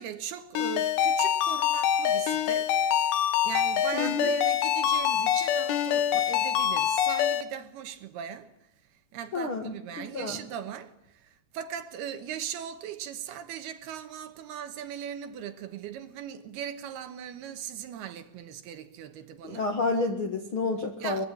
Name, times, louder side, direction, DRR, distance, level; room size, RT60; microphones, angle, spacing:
voice 1, 0.0-2.7 3.1-8.5 9.1-19.7 21.0-21.3, right 9 dB, 70° right, 2.9 m, -39 dB
Ringtone, 0.6-7.4, left 9 dB, 75° left, 3.3 m, -25 dB
voice 2, 3.9-4.2 9.3-10.4 19.4-21.3, left 3 dB, 50° left, 1.5 m, -30 dB
24.0 x 21.5 x 8.6 m
omnidirectional pair, 5.1 m